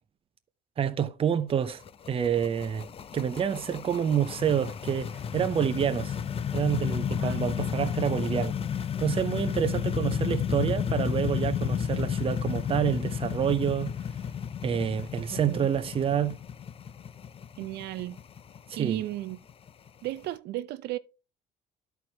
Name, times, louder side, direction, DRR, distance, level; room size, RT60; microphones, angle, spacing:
voice 1, 0.8-1.8 2.1-2.9 3.1-6.2 6.5-8.6 9.0-13.9 14.6-16.4 18.8-19.0, right 8 dB, 35° right, 0.6 m, -28 dB
sound 1, 1.5-20.3, left 8 dB, 35° left, 0.5 m, -32 dB
voice 2, 15.3-15.7 17.6-18.2 18.8-19.4 20.0-21.0, right 15 dB, 75° right, 0.6 m, -34 dB
12.5 x 4.6 x 2.8 m
cardioid pair, 110°, 17 cm